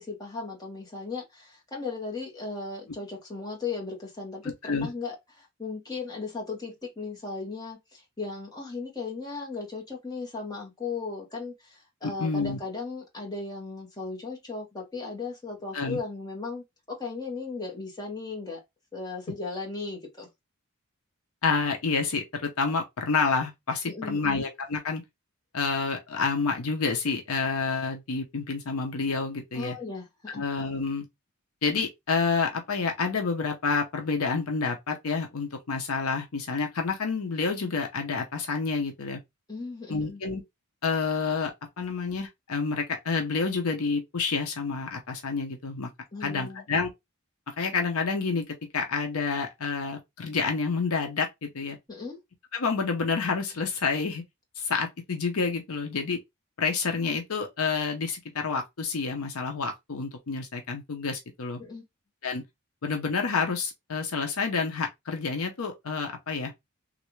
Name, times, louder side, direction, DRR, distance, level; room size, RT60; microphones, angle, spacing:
voice 1, 0.0-18.6 18.9-20.3 23.9-24.4 29.5-30.4 39.5-40.2 46.1-46.6 51.9-52.2 61.6-61.8, left 4 dB, 15° left, 1.2 m, -36 dB
voice 2, 12.0-12.6 15.7-16.0 21.4-25.0 25.5-29.7 30.4-31.1 31.6-39.2 39.9-40.4 40.8-45.9 46.2-46.9 47.5-51.8 52.5-54.2 54.6-56.2 56.6-61.6 62.2-62.4 62.8-66.5, left 4 dB, 70° left, 0.7 m, -29 dB
3.2 x 2.5 x 3.0 m
head